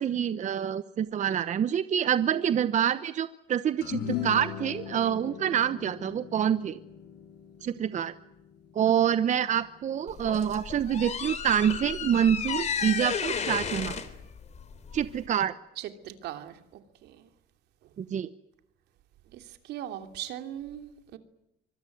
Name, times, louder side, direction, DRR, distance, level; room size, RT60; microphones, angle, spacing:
voice 1, 0.0-6.8 7.6-8.1 8.7-14.0 14.9-15.5 18.0-18.3, right 9 dB, 45° right, 1.0 m, -27 dB
sound 1, 3.8-10.3, left 9 dB, 75° left, 6.2 m, -39 dB
sound 2, 10.1-15.3, left 6 dB, 40° left, 3.7 m, -33 dB
voice 2, 15.8-16.6 17.0-17.3 19.3-21.2, right 11 dB, 80° right, 2.9 m, -39 dB
25.5 x 21.5 x 9.4 m
cardioid pair, 110°, 17 cm